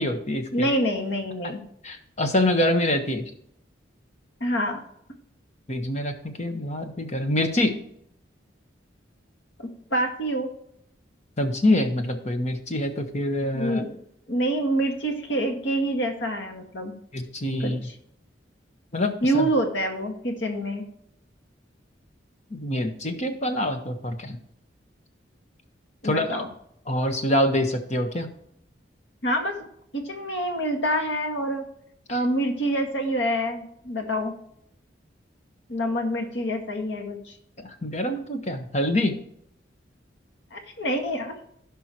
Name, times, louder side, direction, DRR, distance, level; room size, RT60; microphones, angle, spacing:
voice 1, 0.0-0.7 1.8-3.2 5.7-7.8 11.4-13.8 17.1-17.8 18.9-19.5 22.5-24.4 26.0-26.4 26.9-28.3 32.1-32.2 37.6-39.1, left 1 dB, 35° left, 6 dB, 1.3 m, -25 dB
voice 2, 0.5-1.6 4.4-4.8 9.6-10.5 13.5-13.9 14.3-16.9 17.6-18.0 19.2-20.8 26.0-26.5 29.2-29.6 29.9-31.7 32.1-34.3 35.7-37.3 40.5-41.3, right 1 dB, 75° left, 4 dB, 1.9 m, -26 dB
16.5 x 5.5 x 3.0 m, 0.71 s
head